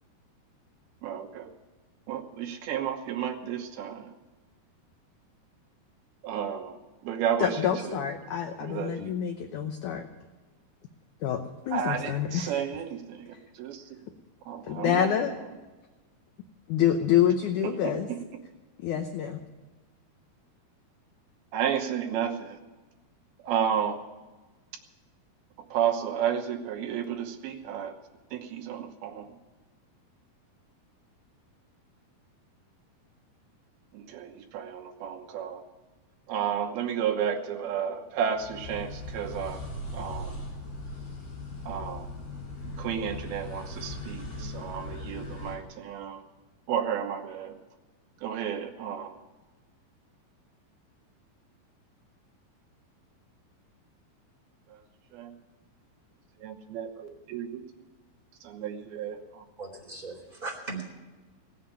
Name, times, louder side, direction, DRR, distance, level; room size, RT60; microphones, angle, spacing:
voice 1, 1.0-1.5 2.1-4.1 6.2-8.0 8.6-9.2 11.7-14.0 14.5-15.5 17.6-18.2 21.5-22.6 23.4-24.0 25.7-28.0 28.3-29.4 33.9-35.6 36.3-39.6 39.9-40.4 41.7-42.1 42.6-46.2 46.7-47.6 48.2-49.2 54.7-54.8 55.1-55.4 56.4-57.8 58.4-59.5, right 8 dB, 75° right, 3 dB, 2.9 m, -32 dB
voice 2, 7.4-10.1 11.2-12.5 14.6-15.3 16.7-18.1 18.8-19.4, left 9 dB, 80° left, 6 dB, 1.8 m, -27 dB
sound 1, 38.3-45.6, left 2 dB, 50° left, 6.7 m, -39 dB
voice 3, 59.6-60.9, right 3 dB, 10° right, -3 dB, 3.7 m, -38 dB
18.0 x 7.6 x 9.7 m, 1.2 s
omnidirectional pair, 4.6 m